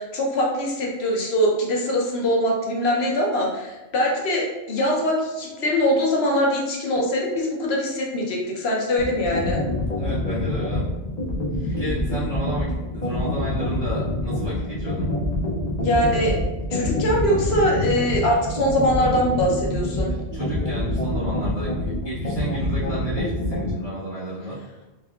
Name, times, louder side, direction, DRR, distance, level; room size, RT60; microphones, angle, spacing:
voice 1, 0.0-9.6 15.8-16.4 16.7-20.1, equal, 60° left, -1 dB, 0.9 m, -22 dB
sound 1, 9.0-23.7, left 1 dB, 45° left, 0.6 m, -26 dB
voice 2, 9.9-10.9 11.7-15.1 20.1-24.6, right 1 dB, 25° right, -9 dB, 0.7 m, -32 dB
3.5 x 3.3 x 2.3 m, 1.1 s
omnidirectional pair, 1.3 m